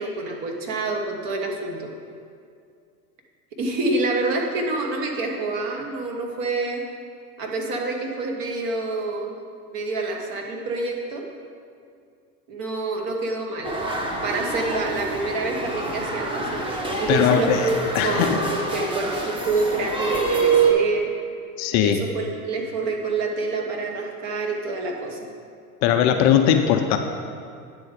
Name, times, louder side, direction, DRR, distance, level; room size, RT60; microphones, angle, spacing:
voice 1, 0.0-1.9 3.6-6.8 7.4-9.3 9.7-11.2 12.5-13.8 14.2-16.6 16.9-21.1 21.8-25.3, right 3 dB, 50° right, 1 dB, 1.4 m, -27 dB
sound 1, 13.6-20.7, right 4 dB, 10° right, 1.0 m, -26 dB
voice 2, 17.1-17.7 17.9-18.4 21.6-22.0 25.8-27.0, left 9 dB, 40° left, 6 dB, 0.5 m, -19 dB
9.5 x 3.8 x 6.5 m, 2.3 s
hypercardioid pair, 85°, 45 cm